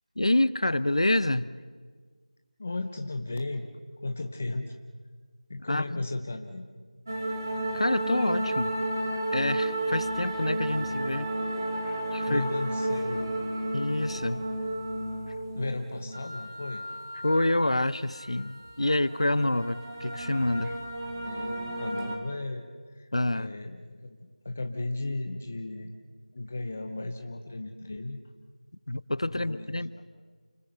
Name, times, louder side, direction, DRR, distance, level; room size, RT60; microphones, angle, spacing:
voice 1, 0.2-1.5 5.7-6.0 7.7-8.7 9.3-11.3 11.9-12.4 13.7-14.4 17.2-20.8 23.1-23.5 28.9-30.0, left 1 dB, 50° left, 17 dB, 0.7 m, -27 dB
voice 2, 2.6-3.7 4.0-4.8 5.5-6.6 12.3-13.3 15.5-16.8 21.2-22.6 23.0-24.2 24.4-25.9 26.3-28.2 29.2-29.7 30.0-30.1, left 2 dB, 15° left, 5 dB, 0.6 m, -35 dB
sound 1, 7.1-22.2, right 1 dB, 25° right, 1.9 m, -32 dB
29.0 x 20.0 x 7.9 m, 1.5 s
figure-of-eight pair, 180°, 4 cm